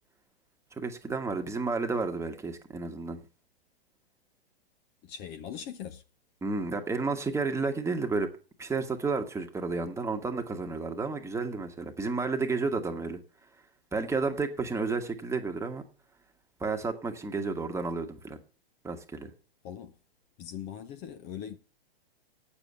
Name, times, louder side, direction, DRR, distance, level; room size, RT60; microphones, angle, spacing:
voice 1, 0.8-3.2 6.4-8.3 8.6-13.2 13.9-15.8 16.6-18.4 18.8-19.3, right 4 dB, 10° right, 1.3 m, -31 dB
voice 2, 5.0-6.0 19.6-19.9 20.4-21.6, left 9 dB, 30° left, 0.8 m, -40 dB
9.0 x 7.1 x 7.5 m
hypercardioid pair, 115°, 31 cm